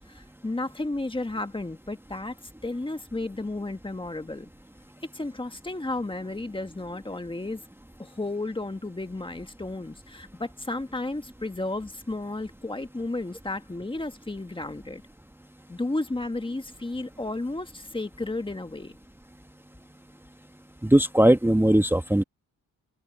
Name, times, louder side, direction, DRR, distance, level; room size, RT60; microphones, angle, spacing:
voice 1, 0.0-2.4 2.6-4.5 5.1-7.6 8.0-15.0 15.7-19.0, left 2 dB, 15° left, 1.7 m, -33 dB
voice 2, 20.8-22.2, right 1 dB, 5° right, 1.5 m, -19 dB
cardioid pair, 85°, 34 cm